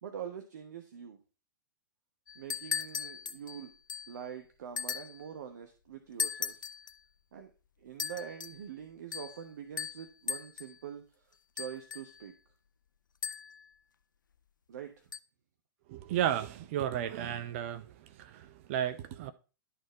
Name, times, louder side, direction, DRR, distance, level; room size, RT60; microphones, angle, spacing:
voice 1, 0.0-1.2 2.3-3.7 4.1-6.6 7.3-7.5 7.8-11.3 11.5-12.3 14.7-15.1, right 8 dB, 55° right, 1.0 m, -44 dB
sound 1, 2.3-4.2 4.8-5.3 6.2-7.0 8.0-8.6 9.1-9.4 9.8-10.8 11.6-12.3 13.2-13.7 15.1-15.2, left 6 dB, 70° left, 0.5 m, -38 dB
voice 2, 15.9-17.9 18.2-19.3, right 10 dB, 40° right, 0.6 m, -33 dB
11.5 x 4.3 x 4.4 m
figure-of-eight pair, 105°, 11 cm